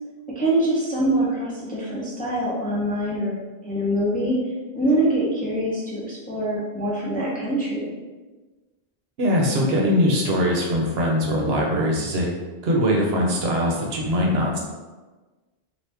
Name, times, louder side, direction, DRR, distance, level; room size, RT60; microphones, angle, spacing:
voice 1, 0.3-3.4 3.6-4.4 4.7-7.9, right 1 dB, 10° left, -6 dB, 0.5 m, -24 dB
voice 2, 9.2-12.3 12.6-14.6, equal, 75° right, -1 dB, 0.9 m, -21 dB
2.9 x 2.5 x 3.3 m, 1.2 s
omnidirectional pair, 1.0 m